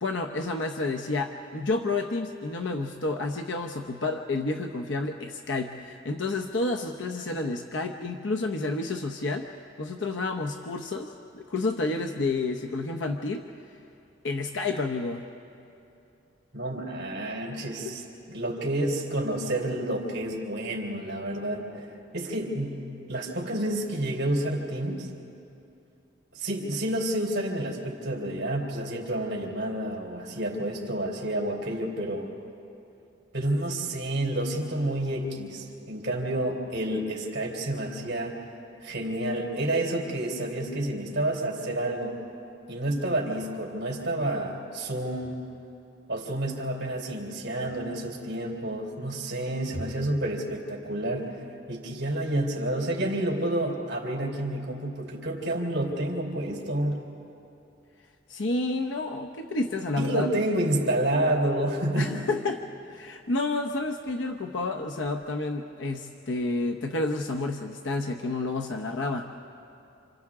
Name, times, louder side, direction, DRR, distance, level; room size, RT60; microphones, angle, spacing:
voice 1, 0.0-9.5 9.8-13.4 14.2-15.3 58.3-60.3 62.0-62.6 62.9-69.3, left 2 dB, 80° left, 4 dB, 0.8 m, -30 dB
voice 2, 16.5-18.0 18.3-22.8 23.1-25.1 26.3-32.3 33.3-38.4 38.8-42.2 42.7-45.4 46.1-51.3 51.7-57.0 60.0-62.2, right 1 dB, 60° right, 0 dB, 3.6 m, -29 dB
29.0 x 27.5 x 3.7 m, 2.8 s
head